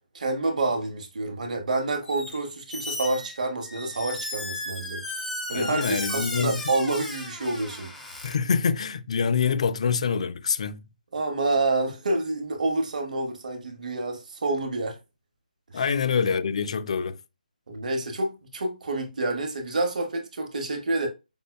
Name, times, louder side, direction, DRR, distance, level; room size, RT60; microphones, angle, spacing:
voice 1, 0.1-5.0 5.5-7.9 11.1-15.0 15.7-15.8 17.7-21.1, right 2 dB, 60° right, 0.9 m, -28 dB
Squeak, 2.0-2.4 2.7-8.3, left 2 dB, 5° left, 0.8 m, -35 dB
voice 2, 5.5-6.6 8.2-10.8 15.7-17.2, left 6 dB, 45° left, 0.4 m, -25 dB
5.3 x 2.1 x 2.2 m
figure-of-eight pair, 160°, 5 cm